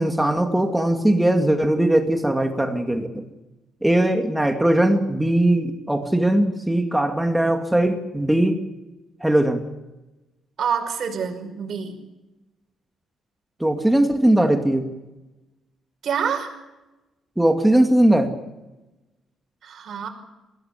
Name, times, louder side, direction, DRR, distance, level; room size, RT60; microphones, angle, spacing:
voice 1, 0.0-3.2 3.8-8.6 9.2-9.6 13.6-14.9 17.4-18.3, right 1 dB, 5° right, 4 dB, 2.3 m, -19 dB
voice 2, 10.6-11.9 16.0-16.5 19.6-20.1, right 7 dB, 60° right, 5 dB, 5.7 m, -26 dB
22.0 x 17.5 x 8.3 m, 1.0 s
cardioid pair, 90°, 0 cm